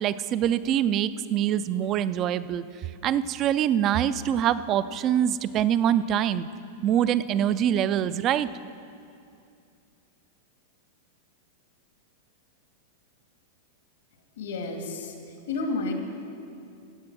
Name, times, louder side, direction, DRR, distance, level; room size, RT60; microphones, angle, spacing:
voice 1, 0.0-2.6 3.0-6.5 6.8-8.5, right 10 dB, 25° right, 15 dB, 0.3 m, -24 dB
voice 2, 14.4-15.2 15.5-15.9, left 3 dB, 85° left, 3 dB, 2.1 m, -30 dB
15.0 x 7.9 x 6.1 m, 2.5 s
supercardioid pair, 165°, 0 cm